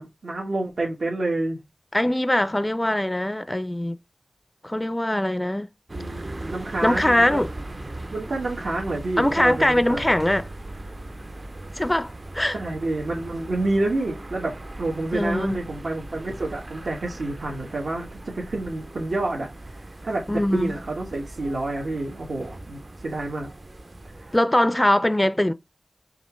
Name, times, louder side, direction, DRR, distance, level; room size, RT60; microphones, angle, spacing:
voice 1, 0.0-1.6 5.9-7.4 8.1-10.1 12.5-23.5 24.0-24.3, right 2 dB, 80° right, 1.1 m, -29 dB
voice 2, 1.9-4.0 4.6-5.7 6.8-7.5 9.2-10.5 11.8-12.6 15.1-15.6 20.3-20.7 24.3-25.5, left 1 dB, 20° left, 0.4 m, -22 dB
sound 1, 5.9-24.4, right 2 dB, 45° right, 0.5 m, -39 dB
5.2 x 2.4 x 3.1 m
cardioid pair, 45°, 0 cm